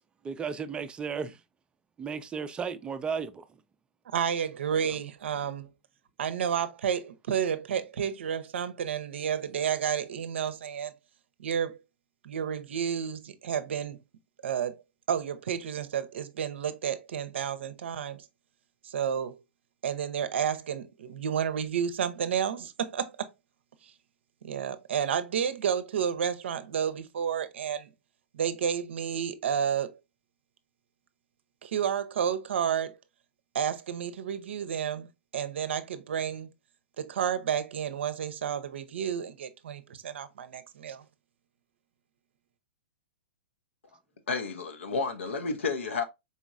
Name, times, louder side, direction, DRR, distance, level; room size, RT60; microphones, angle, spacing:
voice 1, 0.2-1.4 2.0-3.4 4.8-5.0, right 6 dB, 15° right, 0.4 m, -34 dB
voice 2, 4.1-5.7 6.2-10.9 11.4-11.8 12.2-14.0 14.4-14.8 15.1-18.3 18.8-19.4 19.8-23.3 24.4-27.9 28.3-30.0 31.6-33.0 33.5-35.1 35.3-36.5 37.0-41.0, right 8 dB, 70° right, 0.6 m, -31 dB
voice 3, 44.3-46.0, left 4 dB, 80° left, 0.8 m, -31 dB
4.2 x 3.0 x 2.4 m
hypercardioid pair, 120°, 7 cm